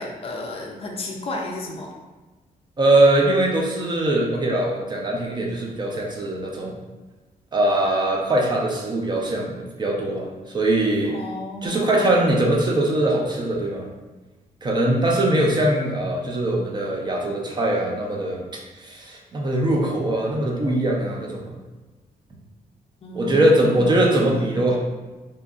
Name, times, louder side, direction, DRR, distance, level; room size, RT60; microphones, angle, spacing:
voice 1, 0.0-1.9 11.1-12.3 23.0-24.6, left 1 dB, 40° left, 0 dB, 0.3 m, -33 dB
voice 2, 2.8-6.8 7.5-11.2 11.6-13.9 14.6-18.4 18.8-21.6 23.1-24.8, right 1 dB, 30° right, -1 dB, 0.4 m, -21 dB
2.8 x 2.4 x 2.3 m, 1.2 s
wide cardioid pair, 155°, 16 cm